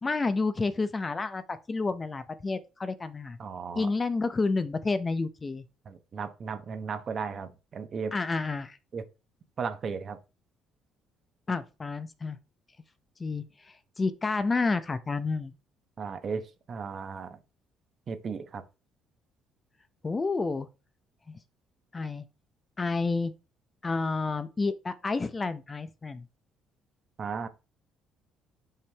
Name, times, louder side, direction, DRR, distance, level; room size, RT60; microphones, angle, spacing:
voice 1, 0.0-3.4 3.7-5.6 8.1-8.8 11.5-12.4 13.2-13.4 14.0-15.5 20.0-20.7 21.3-21.4 21.9-22.3 22.8-23.3 23.8-26.3, left 3 dB, 25° left, 0.7 m, -30 dB
voice 2, 3.4-3.9 5.9-8.2 8.9-9.0 9.6-10.2 16.0-17.4 18.1-18.6 27.2-27.5, right 5 dB, 45° right, 1.0 m, -35 dB
5.7 x 5.2 x 3.4 m
cardioid pair, 95°, 0 cm